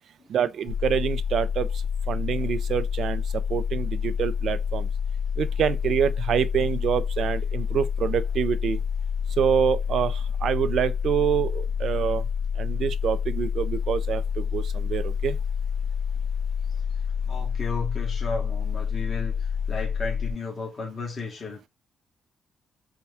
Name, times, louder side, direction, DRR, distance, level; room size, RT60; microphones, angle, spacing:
voice 1, 0.3-4.9 5.4-8.8 9.4-12.3 12.6-15.4, right 8 dB, 65° right, 0.3 m, -26 dB
sound 1, 0.7-20.3, left 7 dB, 70° left, 0.6 m, -28 dB
voice 2, 17.2-21.7, left 4 dB, 35° left, 1.2 m, -34 dB
4.3 x 2.2 x 3.4 m
cardioid pair, 90°, 0 cm